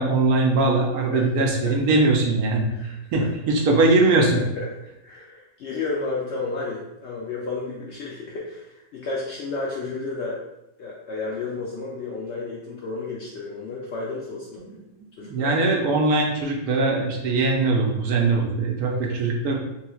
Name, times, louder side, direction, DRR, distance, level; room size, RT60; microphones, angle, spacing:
voice 1, 0.0-2.6 3.1-4.4 14.6-19.6, right 3 dB, 75° right, 0 dB, 1.1 m, -21 dB
voice 2, 1.1-1.7 2.7-3.2 4.3-4.7 5.0-10.4 10.8-14.6 15.2-15.7 18.9-19.1, left 3 dB, 65° left, -4 dB, 0.7 m, -32 dB
3.1 x 3.1 x 2.3 m, 0.90 s
omnidirectional pair, 1.6 m